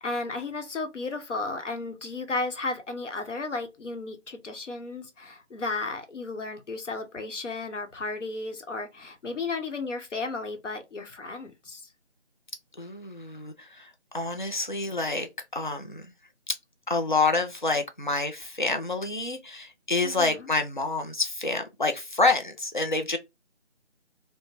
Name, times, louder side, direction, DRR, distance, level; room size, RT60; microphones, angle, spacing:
voice 1, 0.0-11.8 20.0-20.5, left 3 dB, 90° left, 0.9 m, -34 dB
voice 2, 12.8-16.1 16.9-23.2, left 3 dB, 45° left, 0.4 m, -28 dB
3.2 x 2.1 x 2.3 m
figure-of-eight pair, 175°, 35 cm